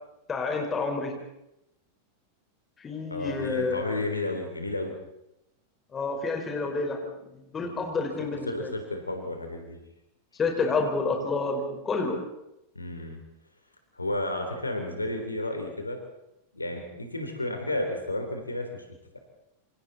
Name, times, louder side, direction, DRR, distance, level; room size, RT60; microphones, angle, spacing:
voice 1, 0.3-1.2 2.8-3.8 5.9-8.7 10.4-12.2, left 3 dB, 20° left, 3 dB, 4.8 m, -29 dB
voice 2, 3.1-4.9 7.6-7.8 8.2-9.8 12.8-13.2 13.9-16.0 16.5-18.8, left 2 dB, 80° left, 4 dB, 3.7 m, -32 dB
27.5 x 26.5 x 4.3 m, 0.87 s
figure-of-eight pair, 90°, 0 cm